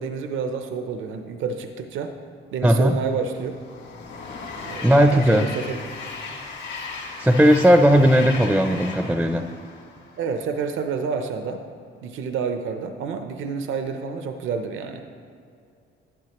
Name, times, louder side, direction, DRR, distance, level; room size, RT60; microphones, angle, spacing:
voice 1, 0.0-2.2 2.5-3.6 4.6-5.8 10.2-11.6 12.0-15.0, right 5 dB, 80° right, 7 dB, 0.6 m, -29 dB
voice 2, 2.6-3.0 4.8-5.4 7.2-9.4, equal, 5° right, 7 dB, 0.4 m, -16 dB
Train, 3.0-10.5, left 4 dB, 60° left, 1.7 m, -37 dB
11.5 x 10.5 x 2.9 m, 2.5 s
cardioid pair, 90°, 20 cm